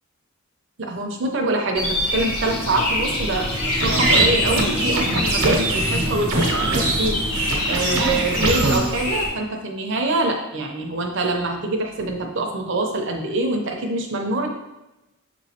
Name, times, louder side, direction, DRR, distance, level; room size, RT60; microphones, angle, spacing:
voice 1, 0.8-14.5, right 2 dB, 55° right, 2 dB, 0.6 m, -25 dB
sound 1, 1.8-9.3, left 1 dB, 90° left, 1.0 m, -26 dB
sound 2, 2.4-7.8, equal, 10° right, 0.5 m, -31 dB
sound 3, 3.6-8.8, right 2 dB, 80° right, 0.9 m, -22 dB
6.2 x 3.0 x 2.8 m, 0.98 s
head